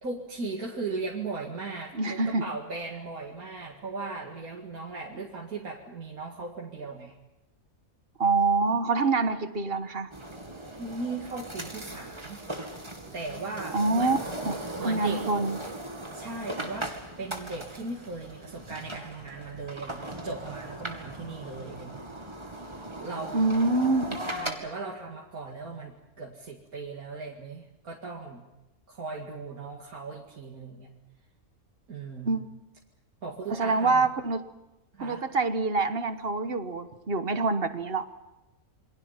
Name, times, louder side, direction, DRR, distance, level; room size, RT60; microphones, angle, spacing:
voice 1, 0.0-7.1 10.8-12.4 13.1-14.2 14.8-15.2 16.1-16.9 17.2-22.1 23.0-23.4 24.2-28.5 28.9-30.9 31.9-32.4 33.2-34.1 34.9-35.2, right 3 dB, 75° right, -2 dB, 2.7 m, -38 dB
voice 2, 1.9-2.4 8.2-10.1 13.7-14.2 14.4-15.6 23.3-24.2 32.2-32.5 33.5-34.4 35.0-38.1, right 3 dB, 45° right, 10 dB, 1.5 m, -26 dB
sound 1, 10.1-24.5, right 1 dB, 20° right, 2.3 m, -38 dB
28.0 x 24.0 x 5.8 m, 0.98 s
omnidirectional pair, 1.5 m